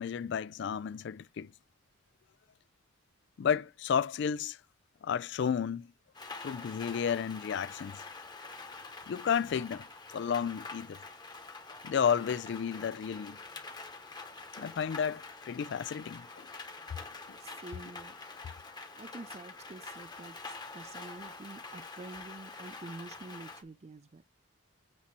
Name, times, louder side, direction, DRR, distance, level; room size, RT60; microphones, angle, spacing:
voice 1, 0.0-1.5 3.4-4.6 5.0-5.9 6.4-8.0 9.1-11.0 11.8-13.4 14.6-16.5 17.3-17.4, left 7 dB, 55° left, 0.3 m, -32 dB
Rain, 6.1-23.6, left 3 dB, 20° left, 1.0 m, -46 dB
voice 2, 17.4-18.1 18.9-24.2, right 2 dB, 30° right, 0.4 m, -47 dB
8.5 x 2.9 x 5.9 m
head